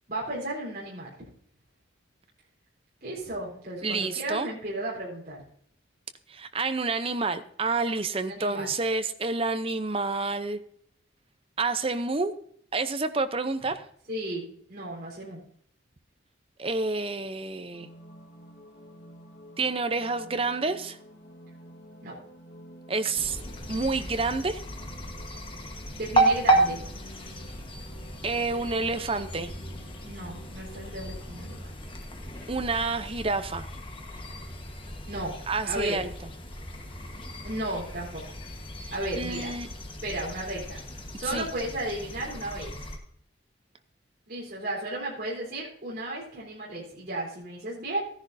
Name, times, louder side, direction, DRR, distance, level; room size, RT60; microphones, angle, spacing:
voice 1, 0.1-1.1 3.0-5.4 8.3-8.7 14.1-15.4 22.0-22.2 25.9-26.8 30.0-31.7 35.1-35.3 35.6-36.0 37.4-38.2 38.9-39.5 40.0-40.8 41.1-42.9 44.3-48.1, right 1 dB, 50° right, -5 dB, 3.9 m, -34 dB
voice 2, 3.8-4.5 6.3-10.6 11.6-12.3 12.7-13.8 16.6-17.9 19.6-21.0 22.9-23.4 23.7-24.6 28.2-29.5 32.5-33.7 35.5-36.1 39.1-39.7 41.3-41.5, right 3 dB, 30° right, 10 dB, 0.6 m, -29 dB
sound 1, 17.7-31.6, equal, 60° left, 1.3 m, -50 dB
sound 2, 23.2-43.0, right 2 dB, 25° left, 1.3 m, -33 dB
15.0 x 10.5 x 2.7 m, 0.64 s
head